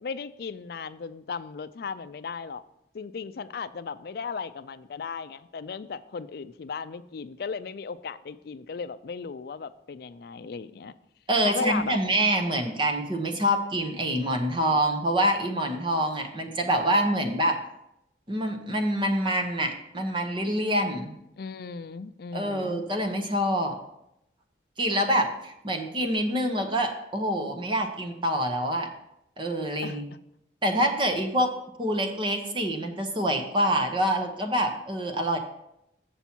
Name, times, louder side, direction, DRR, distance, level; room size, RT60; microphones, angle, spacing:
voice 1, 0.0-2.6 2.9-11.0 11.4-12.0 21.4-22.9 29.8-30.0, left 5 dB, 60° left, 14 dB, 0.4 m, -36 dB
voice 2, 11.3-17.6 18.3-21.2 22.3-23.7 24.8-28.9 29.4-30.0 30.6-31.5 31.8-35.4, right 1 dB, 30° right, 4 dB, 0.9 m, -26 dB
7.1 x 7.0 x 4.4 m, 0.82 s
head